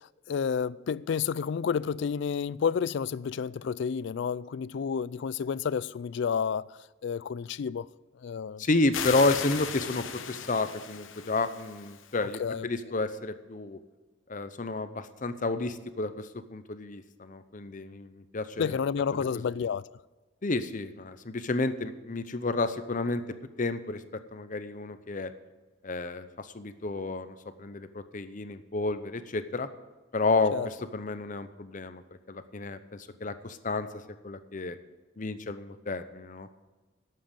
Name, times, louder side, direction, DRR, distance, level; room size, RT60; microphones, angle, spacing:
voice 1, 0.3-7.9 8.2-8.6 12.4-12.7 18.6-19.9 30.5-30.7, left 6 dB, 60° left, 0.3 m, -30 dB
voice 2, 8.6-13.8 14.3-18.8 19.1-19.4 20.4-23.2 23.6-24.0 24.3-25.3 25.8-29.7 30.1-32.0 32.3-33.9 34.2-34.8 35.2-36.5, left 3 dB, 40° left, 0.7 m, -31 dB
sound 1, 8.9-12.2, left 7 dB, 75° left, 0.9 m, -37 dB
11.5 x 7.6 x 7.2 m
head